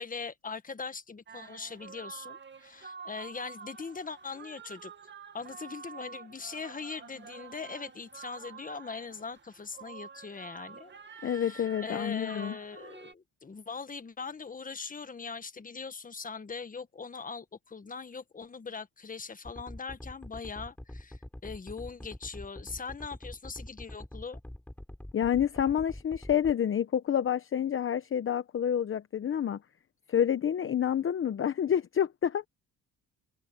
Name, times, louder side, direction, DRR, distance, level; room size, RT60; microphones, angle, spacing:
voice 1, 0.0-4.9 5.3-10.9 11.2-24.4, left 5 dB, 25° left, 1.6 m, -41 dB
sound 1, 1.3-13.1, right 6 dB, 40° right, 2.1 m, -48 dB
voice 2, 11.2-12.6 25.1-29.6 30.1-32.5, left 9 dB, 45° left, 0.9 m, -28 dB
sound 2, 19.4-26.5, left 1 dB, 5° left, 7.2 m, -44 dB
cardioid pair, 90°, 30 cm